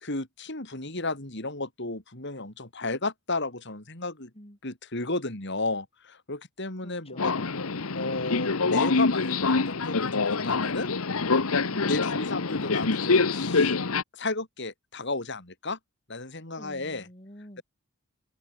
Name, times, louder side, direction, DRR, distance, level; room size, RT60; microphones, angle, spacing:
voice 1, 0.0-4.3 4.6-7.3 7.9-10.9 11.8-13.8 14.1-15.8 16.1-17.1, left 2 dB, 55° left, 4.1 m, -33 dB
voice 2, 6.8-8.0 11.7-12.1 16.6-17.6, equal, 25° left, 7.7 m, -47 dB
Subway metro underground, 7.2-14.0, left 4 dB, 80° left, 1.1 m, -25 dB
head